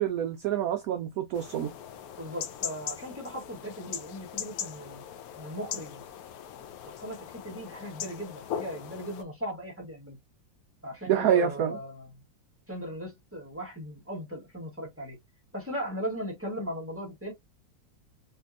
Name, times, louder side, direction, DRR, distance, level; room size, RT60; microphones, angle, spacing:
voice 1, 0.0-1.7 11.0-11.8, right 9 dB, 75° right, 0.8 m, -27 dB
sound 1, 1.3-9.2, left 9 dB, 75° left, 0.9 m, -40 dB
voice 2, 2.2-5.0 5.3-6.0 6.6-10.2 10.8-12.2 12.7-15.2 15.5-17.3, equal, 10° right, 1.0 m, -38 dB
3.3 x 2.8 x 2.4 m
omnidirectional pair, 2.0 m